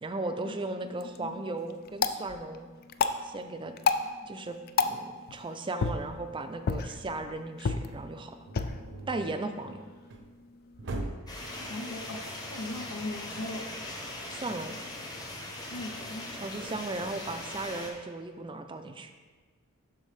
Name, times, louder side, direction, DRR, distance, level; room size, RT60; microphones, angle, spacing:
voice 1, 0.0-2.7 3.2-3.7 4.3-4.6 4.8-8.4 9.1-9.8 14.3-14.8 16.3-19.1, right 2 dB, 20° right, 8 dB, 0.4 m, -36 dB
sound 1, 0.8-10.9, left 5 dB, 45° left, 0.3 m, -34 dB
sound 2, 8.4-10.3 10.8-11.4, right 2 dB, 55° right, 0.7 m, -40 dB
sound 3, 11.3-17.9, left 1 dB, 15° left, 0.9 m, -40 dB
voice 2, 11.7-12.2 12.5-13.7 14.5-14.8 15.6-16.3, left 2 dB, 85° left, 2 dB, 0.8 m, -39 dB
12.0 x 4.0 x 3.3 m, 1.5 s
head